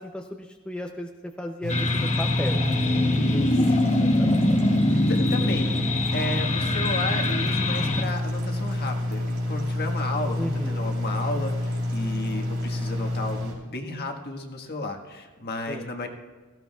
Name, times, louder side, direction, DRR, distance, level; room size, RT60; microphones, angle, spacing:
voice 1, 0.0-2.6 3.3-3.8 4.2-4.3 10.4-10.8 15.7-15.9, equal, 5° left, 2 dB, 0.5 m, -34 dB
sound 1, 1.6-13.5, left 1 dB, 85° right, 4.0 m, -28 dB
sound 2, 1.7-8.0, left 1 dB, 30° left, 1.0 m, -24 dB
voice 2, 4.9-5.7 6.1-16.1, left 2 dB, 50° left, 3 dB, 1.5 m, -33 dB
18.5 x 15.5 x 2.3 m, 1.3 s
head